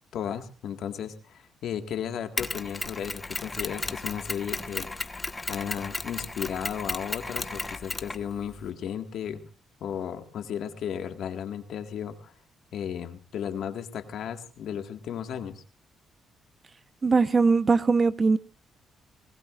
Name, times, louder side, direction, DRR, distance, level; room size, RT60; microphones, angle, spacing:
voice 1, 0.1-4.9 5.5-9.4 9.8-12.3 12.7-15.6, left 8 dB, 70° left, 1.8 m, -34 dB
Mechanisms, 2.4-8.7, left 2 dB, 20° left, 1.2 m, -34 dB
voice 2, 17.0-18.4, right 4 dB, 35° right, 0.9 m, -21 dB
25.0 x 19.5 x 2.5 m
cardioid pair, 90°, 0 cm